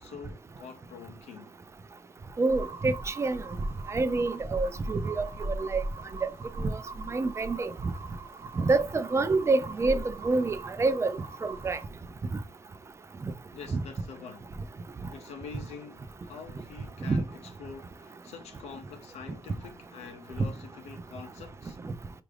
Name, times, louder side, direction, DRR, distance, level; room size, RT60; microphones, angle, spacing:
voice 1, 0.0-1.5 13.5-14.5 15.1-21.8, left 6 dB, 85° left, 0.6 m, -45 dB
voice 2, 2.4-3.4 3.9-5.8 6.2-6.3 6.6-6.8 7.1-7.9 8.6-11.8 13.2-13.3 13.7-13.8 17.1-17.2 21.8-21.9, right 3 dB, 25° right, 0.4 m, -27 dB
sound 1, 2.5-11.8, right 1 dB, 55° right, 1.1 m, -39 dB
4.7 x 2.5 x 3.3 m
cardioid pair, 110°, 11 cm